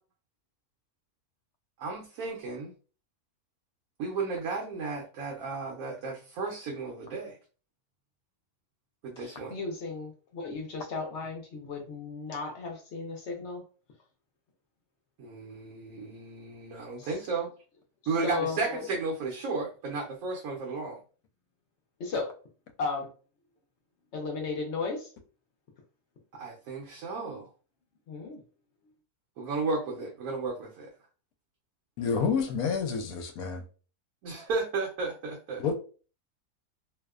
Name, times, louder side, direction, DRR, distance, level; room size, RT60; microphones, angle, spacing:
voice 1, 1.8-2.7 4.0-7.3 9.0-9.5 15.2-17.5 18.1-21.0 26.4-27.5 29.4-30.9 34.2-35.6, right 4 dB, 75° right, 1.1 m, -34 dB
voice 2, 9.2-13.6 17.0-17.1 18.0-18.8 22.0-22.3 22.8-23.1 24.1-25.1 28.1-28.4, left 4 dB, 60° left, 0.8 m, -35 dB
voice 3, 32.0-33.6 35.6-35.7, left 6 dB, 80° left, 1.0 m, -29 dB
2.7 x 2.1 x 2.3 m
omnidirectional pair, 1.6 m